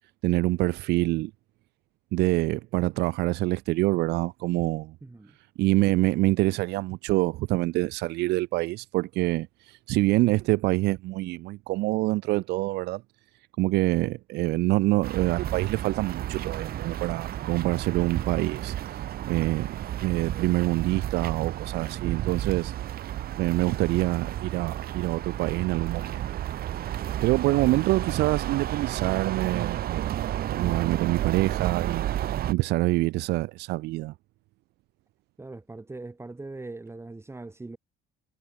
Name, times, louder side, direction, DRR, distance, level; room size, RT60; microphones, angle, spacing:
voice 1, 0.2-1.3 2.1-4.9 5.6-13.0 13.6-19.7 20.0-22.7 23.4-26.4 27.2-30.1 30.5-32.0 32.5-34.1, right 19 dB, 80° right, 0.6 m, -26 dB
voice 2, 5.0-5.4 27.5-27.8 35.4-37.8, right 2 dB, 15° right, 5.3 m, -41 dB
sound 1, 15.0-32.5, right 12 dB, 65° right, 2.1 m, -32 dB
cardioid pair, 110°, 17 cm